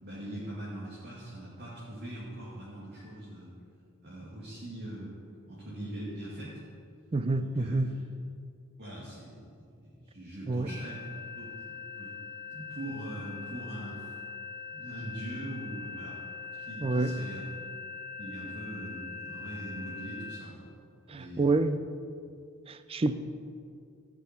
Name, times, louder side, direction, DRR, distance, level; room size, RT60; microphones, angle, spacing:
voice 1, 0.0-3.5 4.0-5.2 5.5-6.6 7.3-7.8 8.8-9.5 9.7-11.1 11.3-12.2 12.5-14.1 14.7-16.2 16.6-17.4 18.2-20.7 21.1-21.5, right 1 dB, 45° right, -9 dB, 2.4 m, -42 dB
voice 2, 7.1-7.9 10.5-10.7 16.8-17.1 21.1-21.8 22.7-23.1, right 2 dB, 25° right, 11 dB, 0.4 m, -28 dB
sound 1, 10.7-20.4, left 5 dB, 45° left, 2.1 m, -42 dB
14.0 x 6.2 x 4.5 m, 2.3 s
head